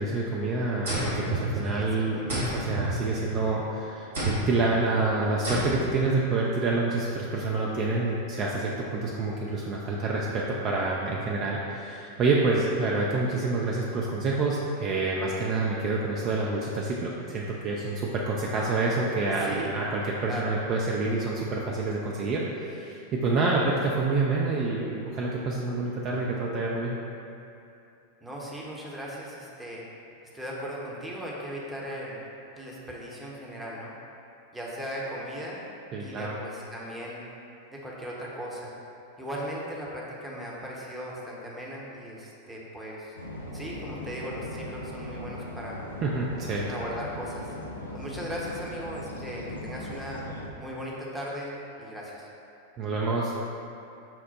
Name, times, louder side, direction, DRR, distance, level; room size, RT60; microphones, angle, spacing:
voice 1, 0.0-27.0 35.9-36.4 46.0-46.7 52.8-53.3, right 3 dB, 35° right, -4 dB, 0.4 m, -27 dB
sound 1, 0.9-1.9 2.3-3.6 4.1-4.7 5.4-6.1, right 1 dB, 65° right, 1.2 m, -30 dB
voice 2, 1.5-2.5 19.4-19.7 20.3-20.6 28.2-29.8 30.3-32.2 32.5-33.9 34.5-35.7 36.0-37.2 37.7-38.7 39.2-43.1 43.5-45.8 46.7-47.5 47.9-50.2 50.6-52.3, equal, 5° right, -5 dB, 0.8 m, -38 dB
sound 2, 43.2-50.5, left 1 dB, 80° left, 0.4 m, -39 dB
5.7 x 2.1 x 4.1 m, 2.7 s
figure-of-eight pair, 90°, 0 cm